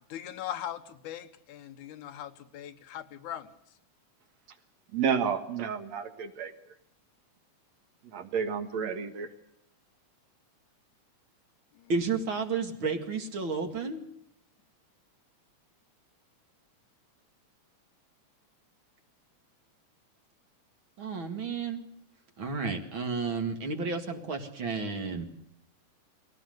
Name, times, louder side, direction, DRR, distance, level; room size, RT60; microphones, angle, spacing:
voice 1, 0.1-3.5, left 11 dB, 80° left, 10 dB, 2.5 m, -40 dB
voice 2, 4.9-6.5 8.1-9.3, right 7 dB, 65° right, 7 dB, 2.6 m, -30 dB
voice 3, 11.9-14.0 21.0-21.8 22.4-25.2, right 4 dB, 45° right, 5 dB, 2.5 m, -32 dB
21.0 x 17.5 x 7.8 m, 0.74 s
omnidirectional pair, 3.5 m